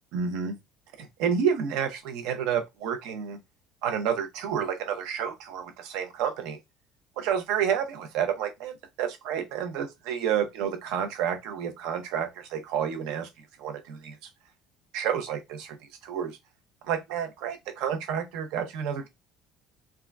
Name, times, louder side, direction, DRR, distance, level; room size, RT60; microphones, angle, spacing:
voice 1, 0.1-0.5 1.0-3.4 3.8-6.6 7.2-13.3 13.6-14.2 14.9-15.8 16.0-16.4 16.8-19.1, right 8 dB, 75° right, 0.7 m, -30 dB
3.6 x 2.2 x 2.2 m
cardioid pair, 175°, 0 cm